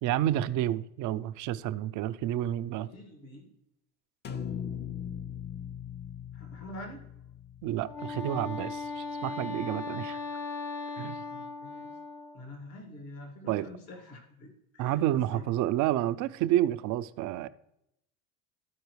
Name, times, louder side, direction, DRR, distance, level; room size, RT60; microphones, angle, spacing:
voice 1, 0.0-2.9 7.6-10.2 11.0-11.2 13.5-13.7 14.8-17.5, right 13 dB, 45° right, 0.4 m, -29 dB
voice 2, 2.7-3.5 6.3-7.0 11.3-12.0 12.3-15.5, left 1 dB, 70° left, 2.1 m, -46 dB
sound 1, 4.2-8.5, left 8 dB, 25° left, 0.5 m, -40 dB
Wind instrument woodwind instrument, 7.8-12.4, left 4 dB, 50° left, 0.9 m, -38 dB
13.0 x 4.7 x 3.1 m
hypercardioid pair, 85°, 44 cm